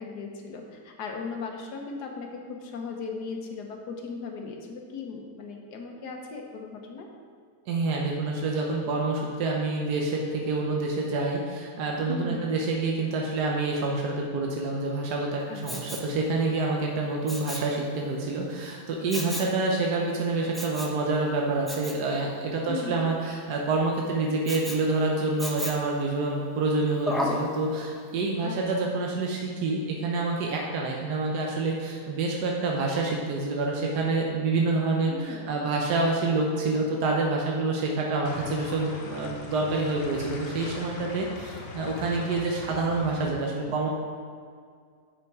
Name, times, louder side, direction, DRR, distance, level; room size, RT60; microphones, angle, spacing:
voice 1, 0.0-7.1 12.1-12.4 15.5-15.9 22.7-23.1 28.4-28.6 35.0-35.5, left 4 dB, 85° left, 2 dB, 1.5 m, -37 dB
voice 2, 7.7-43.9, right 3 dB, 85° right, -1 dB, 1.4 m, -27 dB
Respiratory sounds, 15.6-16.1 17.3-17.7 19.1-19.6 20.5-21.0 21.7-22.0 24.5-24.8 25.4-25.9 27.1-27.5 28.0-28.1, left 1 dB, ahead, 0.3 m, -33 dB
sound 1, 38.2-43.3, left 3 dB, 45° left, 1.0 m, -40 dB
7.8 x 5.9 x 4.7 m, 2.1 s
omnidirectional pair, 1.7 m